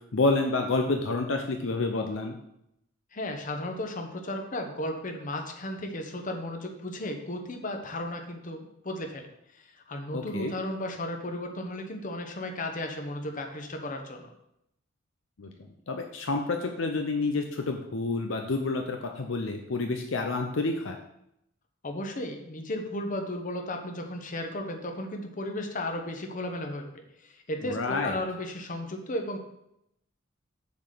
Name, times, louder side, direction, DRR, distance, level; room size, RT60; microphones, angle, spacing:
voice 1, 0.1-2.4 10.1-10.5 15.4-15.5 15.9-21.0 27.6-28.2, left 3 dB, 70° left, 4 dB, 0.7 m, -29 dB
voice 2, 3.1-9.2 9.5-9.6 9.9-14.3 21.8-29.4, left 1 dB, 40° left, 4 dB, 1.0 m, -34 dB
7.1 x 4.0 x 6.7 m, 0.80 s
head